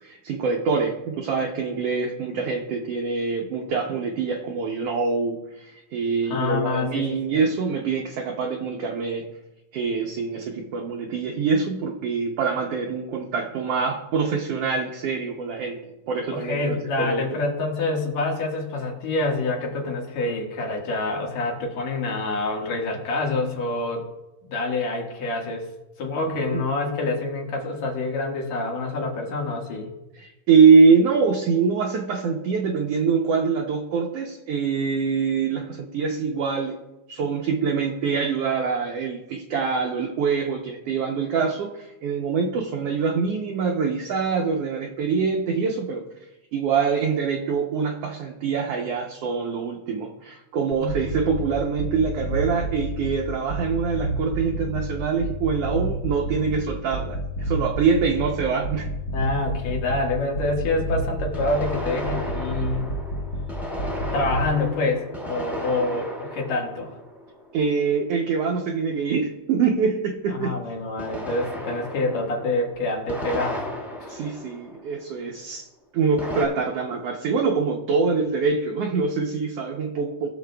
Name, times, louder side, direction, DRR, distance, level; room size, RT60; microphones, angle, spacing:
voice 1, 0.0-9.3 9.7-17.2 26.3-26.6 30.1-36.8 37.1-46.1 46.5-58.9 67.5-70.6 74.1-75.6 75.9-80.3, right 5 dB, 70° right, 1 dB, 1.6 m, -24 dB
voice 2, 6.3-7.5 16.3-24.0 24.5-25.7 26.0-29.9 50.8-50.9 59.1-62.9 64.1-66.9 70.3-73.7 74.0-74.2, left 2 dB, 70° left, 0 dB, 2.8 m, -27 dB
sound 1, 50.7-51.5 51.8-53.2 53.5-54.9 55.2-56.6 56.9-58.3 58.6-60.0 60.3-61.7 62.1-63.5 63.8-64.4, right 1 dB, 45° left, 1.0 m, -29 dB
sound 2, 57.4-57.5 61.3-67.8 71.0-75.2 76.2-76.5, left 1 dB, ahead, 1.4 m, -34 dB
20.0 x 6.8 x 2.2 m, 1.0 s
omnidirectional pair, 3.3 m